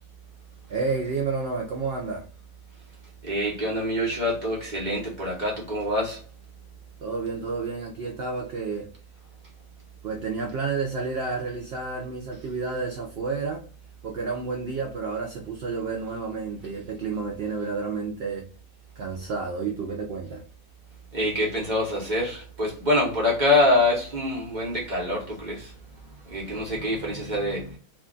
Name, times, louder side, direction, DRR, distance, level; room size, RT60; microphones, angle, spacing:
voice 1, 0.7-2.2 7.0-8.9 10.0-13.6 14.0-18.5 19.0-20.4, right 4 dB, 85° right, 1 dB, 0.5 m, -30 dB
voice 2, 3.2-6.2 21.1-25.7 26.3-27.8, left 1 dB, 40° right, -3 dB, 0.8 m, -25 dB
2.6 x 2.2 x 3.7 m, 0.43 s
omnidirectional pair, 1.6 m